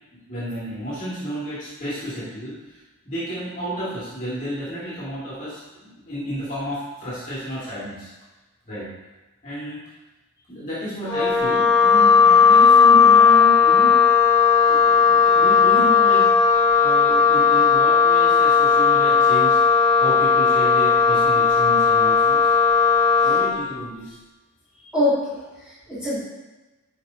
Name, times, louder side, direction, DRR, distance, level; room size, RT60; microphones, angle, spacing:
voice 1, 0.1-2.8 3.0-8.1 8.7-8.9 9.4-9.8 10.5-14.1 14.7-22.5 23.2-24.2, equal, 35° left, -8 dB, 2.3 m, -32 dB
Wind instrument woodwind instrument, 11.1-23.5, left 6 dB, 10° left, 1.5 m, -16 dB
voice 2, 24.9-26.2, left 1 dB, 5° right, -12 dB, 2.5 m, -24 dB
9.7 x 5.0 x 2.8 m, 1.1 s
head